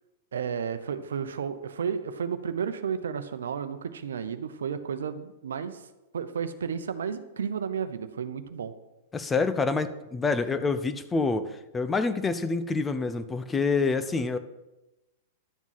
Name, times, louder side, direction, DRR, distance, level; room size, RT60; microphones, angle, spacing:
voice 1, 0.3-5.8 6.1-8.7, right 7 dB, 75° right, 11 dB, 0.8 m, -32 dB
voice 2, 9.1-14.4, left 4 dB, 15° left, 11 dB, 0.8 m, -27 dB
11.5 x 7.2 x 5.8 m, 1.0 s
hypercardioid pair, 105°, 0 cm